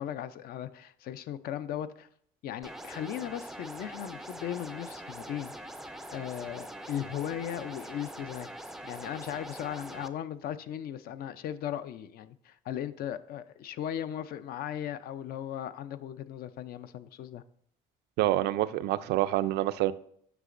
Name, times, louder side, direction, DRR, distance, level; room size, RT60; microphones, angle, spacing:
voice 1, 0.0-2.1 2.4-5.5 6.1-8.5 8.8-17.4, left 10 dB, 65° left, 0.4 m, -37 dB
sound 1, 2.6-10.1, right 1 dB, ahead, 0.3 m, -43 dB
voice 2, 18.2-19.9, right 15 dB, 80° right, 0.4 m, -27 dB
8.0 x 5.8 x 2.5 m
cardioid pair, 110°, 17 cm